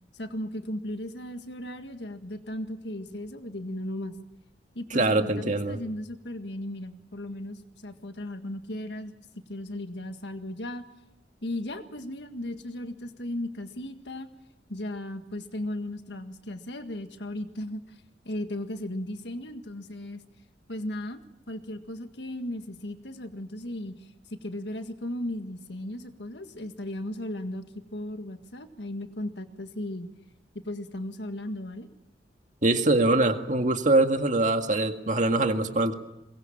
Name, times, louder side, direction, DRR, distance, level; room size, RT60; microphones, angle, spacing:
voice 1, 0.1-4.2 4.8-9.2 9.5-10.8 11.4-14.3 14.7-18.0 18.3-20.2 20.7-21.2 21.5-24.1 24.4-27.6 27.9-30.1 30.5-31.9, left 1 dB, 70° left, 7 dB, 1.8 m, -36 dB
voice 2, 4.9-5.8 32.6-35.9, right 2 dB, 45° right, 6 dB, 1.9 m, -23 dB
23.0 x 21.0 x 7.3 m, 0.93 s
head